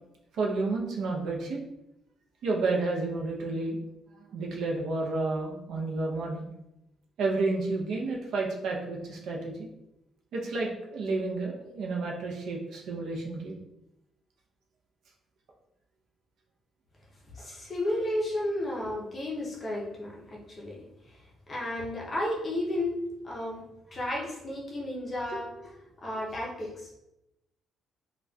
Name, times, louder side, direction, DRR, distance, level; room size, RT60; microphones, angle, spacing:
voice 1, 0.3-1.6 2.4-3.8 4.1-6.5 7.2-9.7 10.3-13.6 25.3-25.4, right 3 dB, 60° right, -1 dB, 0.5 m, -31 dB
voice 2, 17.3-21.2 21.5-23.6 23.9-25.7 26.0-27.0, left 1 dB, 20° left, -3 dB, 0.6 m, -33 dB
3.9 x 2.2 x 2.2 m, 0.88 s
cardioid pair, 180°, 0 cm